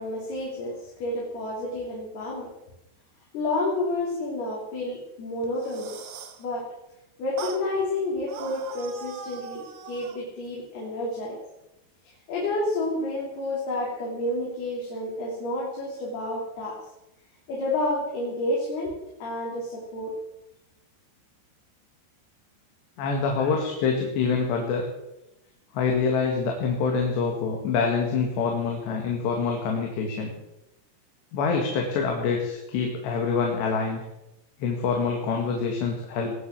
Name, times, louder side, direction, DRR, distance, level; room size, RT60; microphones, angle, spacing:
voice 1, 0.0-2.5 3.3-6.1 6.4-6.7 7.2-11.4 12.0-16.8 17.5-18.9 19.2-20.1 23.4-23.5, left 2 dB, 70° left, -4 dB, 5.3 m, -30 dB
sound 1, 5.4-6.4 7.4-7.7 8.3-10.2, right 7 dB, 60° right, 2.3 m, -40 dB
voice 2, 23.0-24.9 25.7-30.3 31.3-34.0 34.6-36.3, left 5 dB, 85° left, 1 dB, 4.2 m, -26 dB
20.5 x 8.9 x 7.6 m, 0.91 s
omnidirectional pair, 4.8 m